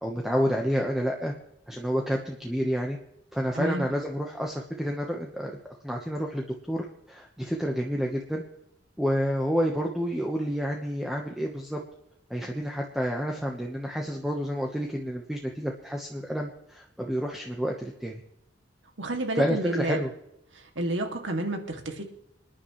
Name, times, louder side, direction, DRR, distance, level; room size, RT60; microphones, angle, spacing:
voice 1, 0.0-1.3 1.7-3.0 3.3-5.5 5.8-8.4 9.0-11.8 12.3-18.2 19.3-20.1, equal, ahead, 0 dB, 1.1 m, -29 dB
voice 2, 3.5-3.9 19.0-20.0 20.5-22.0, right 1 dB, 85° right, 3 dB, 2.5 m, -30 dB
27.0 x 10.5 x 3.2 m, 0.78 s
head